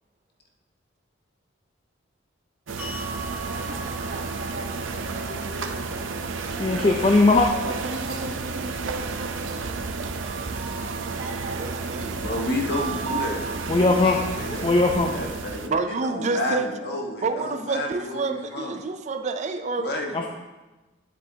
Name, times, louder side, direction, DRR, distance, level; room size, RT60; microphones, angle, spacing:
sound 1, 2.7-15.7, right 4 dB, 90° right, 0.6 m, -32 dB
sound 2, 2.8-9.0, right 2 dB, 5° right, 3.0 m, -43 dB
sound 3, 3.4-15.0, right 3 dB, 70° right, 1.0 m, -37 dB
voice 1, 6.6-7.5 13.7-14.2 14.6-15.1 20.1-20.3, left 3 dB, 25° left, 2 dB, 0.4 m, -19 dB
voice 2, 9.7-10.4 10.7-12.2 15.6-16.7 17.2-20.0, right 4 dB, 40° right, 8 dB, 0.4 m, -29 dB
voice 3, 12.1-14.7 15.1-18.8 19.8-20.3, left 1 dB, 55° left, 1 dB, 1.3 m, -31 dB
10.0 x 7.4 x 2.8 m, 1.1 s
head